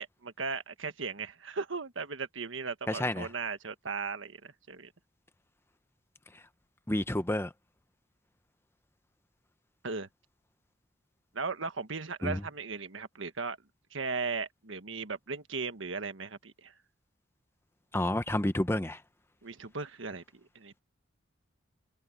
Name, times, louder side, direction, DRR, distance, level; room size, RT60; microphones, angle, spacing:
voice 1, 0.0-4.9 9.8-10.1 11.3-13.6 13.9-16.7 19.4-20.2 20.5-20.8, right 4 dB, 75° right, 1.5 m, -37 dB
voice 2, 2.9-3.3 6.9-7.5 12.2-12.4 17.9-19.0, left 1 dB, 10° left, 0.8 m, -29 dB
head